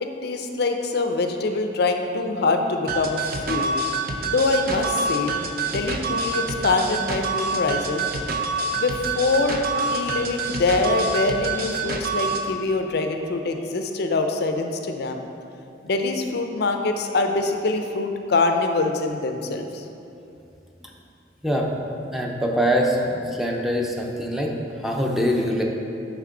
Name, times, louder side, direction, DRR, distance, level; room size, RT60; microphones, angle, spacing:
voice 1, 0.0-3.7 4.3-5.3 5.7-8.1 8.7-15.2 15.8-19.8, left 3 dB, 60° left, 5 dB, 0.5 m, -24 dB
sound 1, 2.9-12.5, right 3 dB, 55° right, 0.5 m, -27 dB
voice 2, 22.1-24.5 24.8-25.6, equal, ahead, -1 dB, 0.5 m, -23 dB
9.3 x 3.6 x 3.7 m, 2.6 s
head